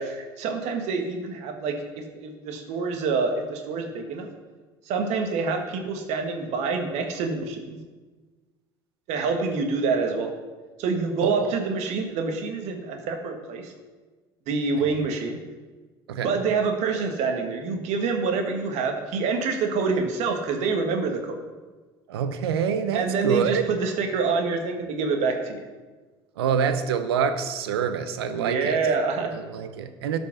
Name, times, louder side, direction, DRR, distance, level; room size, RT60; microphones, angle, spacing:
voice 1, 0.0-4.3 4.9-7.8 9.1-10.3 10.8-13.7 14.5-15.4 16.2-21.4 22.9-25.7 28.4-29.3, right 4 dB, 60° right, 4 dB, 1.7 m, -26 dB
voice 2, 11.2-11.5 14.8-14.9 16.1-16.3 22.1-23.6 26.4-28.8 29.3-30.2, right 7 dB, 80° right, 10 dB, 0.8 m, -26 dB
13.0 x 5.3 x 6.0 m, 1.3 s
hypercardioid pair, 75°, 13 cm